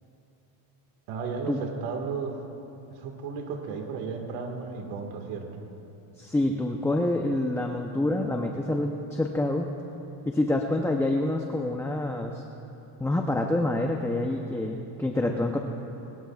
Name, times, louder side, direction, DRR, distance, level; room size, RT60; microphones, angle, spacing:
voice 1, 1.1-2.4 2.9-5.6, right 5 dB, 90° right, 3 dB, 1.9 m, -34 dB
voice 2, 6.2-9.7 10.3-12.4 13.0-15.6, left 1 dB, 5° left, 2 dB, 0.7 m, -27 dB
23.0 x 20.5 x 2.4 m, 2.9 s
cardioid pair, 130°, 46 cm